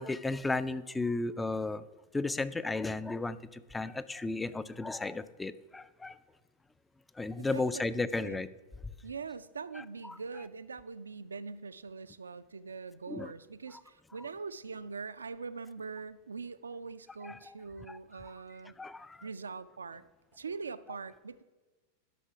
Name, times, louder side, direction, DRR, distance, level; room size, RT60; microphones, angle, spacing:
voice 1, 0.0-1.8 2.1-6.2 7.2-8.5 10.0-10.2 13.1-13.3 17.2-17.5 17.9-18.0 18.8-19.2, left 3 dB, 10° left, 16 dB, 0.3 m, -34 dB
voice 2, 7.4-8.4 9.0-18.7 19.2-20.0 20.3-21.4, right 4 dB, 75° right, 14 dB, 0.3 m, -43 dB
12.0 x 4.3 x 4.8 m, 1.2 s
figure-of-eight pair, 90°, 0 cm